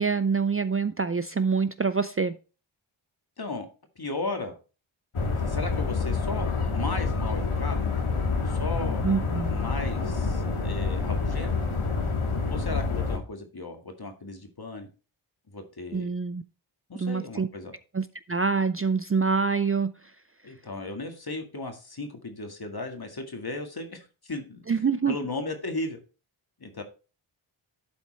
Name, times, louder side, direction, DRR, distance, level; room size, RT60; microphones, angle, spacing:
voice 1, 0.0-2.4 9.0-9.5 15.9-16.4 17.0-17.5 17.9-19.9 24.7-25.2, right 5 dB, 30° right, 12 dB, 0.5 m, -26 dB
voice 2, 4.0-4.5 5.3-6.5 6.7-7.9 8.4-9.0 9.5-11.5 12.5-14.9 15.5-16.1 16.9-17.7 20.4-26.0 26.6-26.8, left 2 dB, 45° left, 5 dB, 2.0 m, -36 dB
Port Tone, 5.1-13.2, left 4 dB, 80° left, 1.7 m, -27 dB
12.0 x 4.3 x 4.2 m, 0.34 s
cardioid pair, 45°, 50 cm